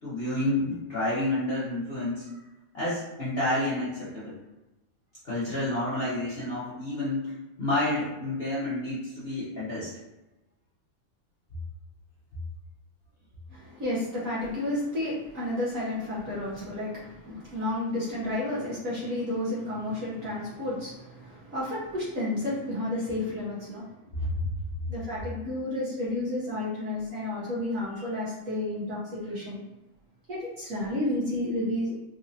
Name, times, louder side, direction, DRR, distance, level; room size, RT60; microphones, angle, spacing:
voice 1, 0.0-2.3 2.7-4.4 5.2-9.9 24.2-24.5, left 1 dB, 40° left, -11 dB, 0.9 m, -29 dB
voice 2, 13.5-23.9 24.9-29.6 30.3-32.0, left 1 dB, 55° right, -7 dB, 1.1 m, -31 dB
4.1 x 2.7 x 2.6 m, 1.0 s
omnidirectional pair, 2.2 m